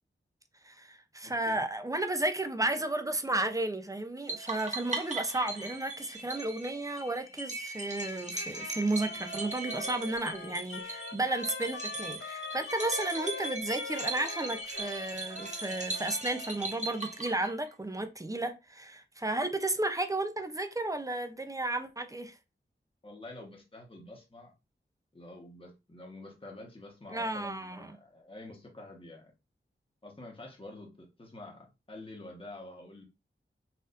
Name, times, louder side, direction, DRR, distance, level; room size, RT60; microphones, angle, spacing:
voice 1, 0.6-22.4 27.1-27.9, right 2 dB, 15° right, 0.5 m, -33 dB
voice 2, 1.2-1.6 23.0-24.5 25.1-29.3 30.0-33.0, left 2 dB, 25° left, 1.1 m, -48 dB
sound 1, 4.3-17.7, right 2 dB, 35° right, 1.0 m, -39 dB
Trumpet, 8.3-16.6, left 6 dB, 70° left, 0.4 m, -45 dB
4.2 x 2.6 x 2.5 m
wide cardioid pair, 75°, 20 cm